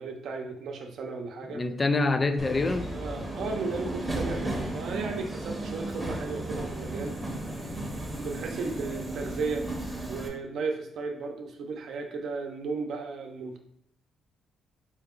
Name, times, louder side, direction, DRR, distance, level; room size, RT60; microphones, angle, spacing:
voice 1, 0.0-1.6 2.9-7.2 8.2-9.7 10.1-13.6, right 4 dB, 70° right, 0.6 m, -35 dB
voice 2, 1.4-2.9, left 3 dB, 25° left, 0.3 m, -26 dB
Subway metro underground, 2.4-10.3, right 1 dB, 5° right, 0.8 m, -34 dB
4.5 x 2.3 x 3.6 m
cardioid pair, 120°, 0 cm